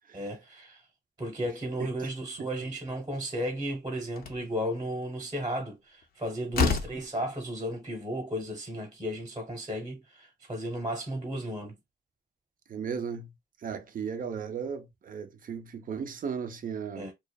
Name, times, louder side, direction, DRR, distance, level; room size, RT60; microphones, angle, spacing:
voice 1, 0.1-0.8 1.2-11.8 16.9-17.1, equal, 20° right, 1.0 m, -34 dB
Slam, 4.2-4.5 6.0-6.1 6.5-7.1, left 6 dB, 50° left, 0.6 m, -28 dB
voice 2, 12.7-13.3 13.6-17.1, right 6 dB, 45° right, 0.5 m, -35 dB
2.5 x 2.3 x 2.2 m
cardioid pair, 90°, 20 cm